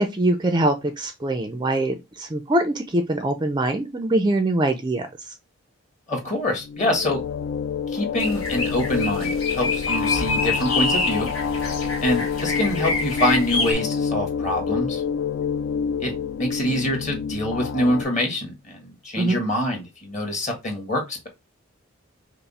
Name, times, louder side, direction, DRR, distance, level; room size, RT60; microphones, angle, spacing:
voice 1, 0.0-5.1 19.2-19.4, right 1 dB, 20° right, 0.4 m, -23 dB
voice 2, 6.1-7.2 7.9-11.3 12.0-15.0 16.0-16.1 16.4-21.3, left 1 dB, 35° left, 1.5 m, -25 dB
sound 1, 6.5-18.0, left 6 dB, 55° left, 0.3 m, -27 dB
sound 2, 8.2-13.7, left 2 dB, 75° left, 1.6 m, -27 dB
5.6 x 2.0 x 4.1 m
head